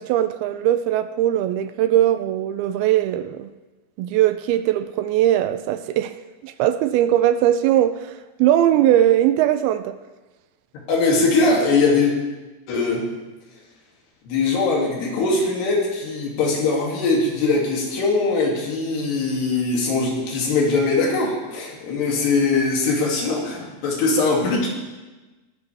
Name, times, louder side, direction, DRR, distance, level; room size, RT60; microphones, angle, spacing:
voice 1, 0.0-3.5 4.0-6.1 6.4-8.1 8.4-10.0, right 12 dB, 85° right, 2.2 m, -20 dB
voice 2, 10.9-12.1 12.7-13.1 14.3-24.7, left 3 dB, 70° left, 4.7 m, -21 dB
20.5 x 13.5 x 3.5 m
omnidirectional pair, 4.9 m